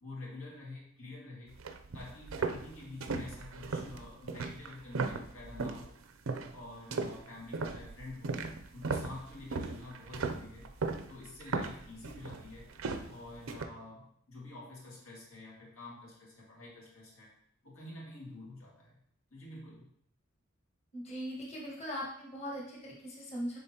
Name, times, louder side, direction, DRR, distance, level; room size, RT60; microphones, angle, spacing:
voice 1, 0.0-1.6 1.9-6.0 6.5-8.4 8.7-10.7 11.1-12.7 13.1-17.3 17.6-19.0 19.3-19.9, left 2 dB, 90° left, -4 dB, 2.1 m, -48 dB
sound 1, 1.5-5.9 6.3-6.6 6.9-13.6, right 4 dB, 85° right, 0.5 m, -37 dB
voice 2, 20.9-23.6, equal, 30° left, -4 dB, 1.4 m, -40 dB
9.9 x 3.8 x 2.9 m, 0.69 s
head